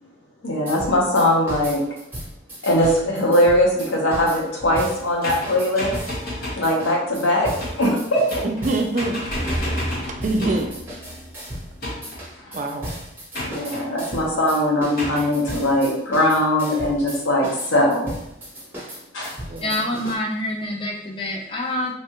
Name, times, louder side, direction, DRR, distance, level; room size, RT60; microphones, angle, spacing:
voice 1, 0.4-1.8 2.6-5.9 6.6-8.4 12.4-12.7 13.4-18.1 19.1-19.4, left 1 dB, 90° left, -2 dB, 0.9 m, -20 dB
sound 1, 0.7-6.2 6.6-9.0 9.5-9.7 10.2-11.7 12.0-20.1, equal, 10° right, 0.8 m, -36 dB
sound 2, 5.2-6.7 7.6-7.9 8.3-8.7 9.0-10.8 11.8-12.3 13.3-13.9 15.0-15.3, left 1 dB, 50° left, 1.1 m, -31 dB
voice 2, 8.4-9.1 10.1-10.7 12.5-12.9 19.5-19.8, right 2 dB, 40° right, 3 dB, 0.3 m, -24 dB
sound 3, 9.3-12.7 13.0-13.1, equal, 75° left, 1.3 m, -33 dB
voice 3, 19.6-21.9, left 1 dB, 25° left, -1 dB, 0.5 m, -26 dB
3.2 x 2.3 x 2.9 m, 0.85 s
head